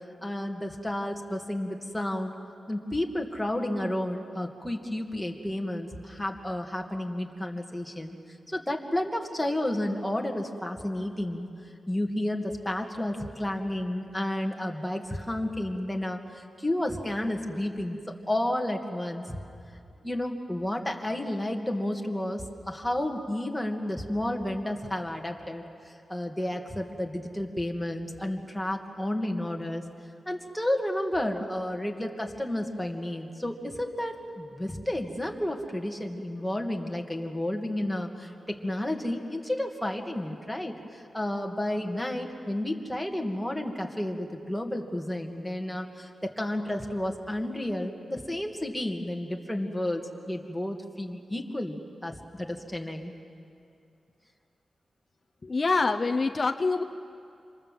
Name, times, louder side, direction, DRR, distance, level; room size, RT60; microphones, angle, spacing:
voice 1, 0.2-2.3 2.7-8.2 8.5-11.5 11.9-19.4 20.0-29.8 30.3-53.1, left 1 dB, 5° left, 1 dB, 2.3 m, -31 dB
voice 2, 55.4-56.8, left 3 dB, 35° left, 5 dB, 0.8 m, -25 dB
27.0 x 26.5 x 7.7 m, 2.5 s
wide cardioid pair, 105°, 0 cm